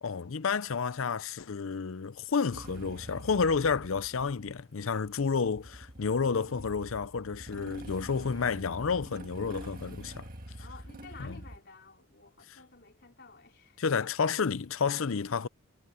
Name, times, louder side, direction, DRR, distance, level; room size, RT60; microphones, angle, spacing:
voice 1, 0.0-10.3 11.2-11.4 13.8-15.5, left 5 dB, 70° left, 0.6 m, -30 dB
Motorcycle / Engine starting, 2.5-11.6, right 1 dB, 40° right, 1.9 m, -46 dB
voice 2, 10.6-13.8, left 4 dB, 50° left, 3.8 m, -52 dB
head